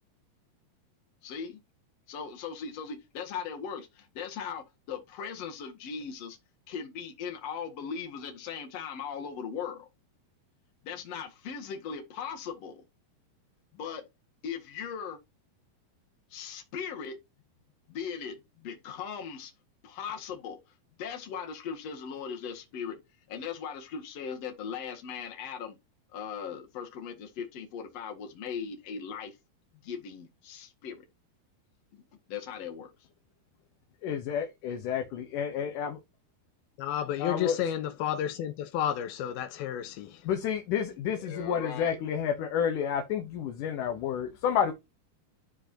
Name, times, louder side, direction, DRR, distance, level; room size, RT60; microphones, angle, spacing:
voice 1, 1.2-1.6 2.1-6.4 6.7-9.9 10.8-12.8 13.7-14.0 14.4-15.2 16.3-17.2 17.9-19.5 19.8-20.6 21.0-23.0 23.3-25.8 26.1-29.4 29.8-31.1 31.9-32.9 41.0-42.0, left 7 dB, 50° left, 2.6 m, -39 dB
voice 2, 34.0-35.9 37.2-37.6 40.3-44.7, left 8 dB, 70° left, 2.3 m, -30 dB
voice 3, 36.8-40.2, left 10 dB, 85° left, 2.5 m, -31 dB
12.5 x 4.7 x 2.9 m
omnidirectional pair, 4.4 m